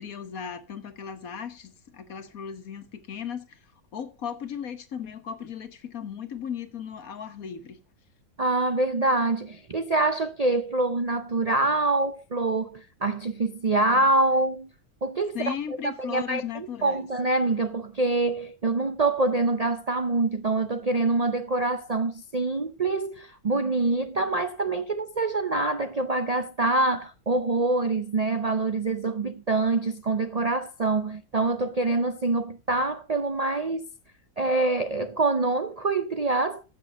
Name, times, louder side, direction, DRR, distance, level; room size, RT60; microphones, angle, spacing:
voice 1, 0.0-3.6 3.9-7.8 15.3-17.1, left 8 dB, 70° left, 1.7 m, -36 dB
voice 2, 8.4-14.7 15.0-15.6 15.8-33.9 34.4-36.6, right 2 dB, 45° right, 0.5 m, -25 dB
14.5 x 6.2 x 5.2 m
omnidirectional pair, 1.6 m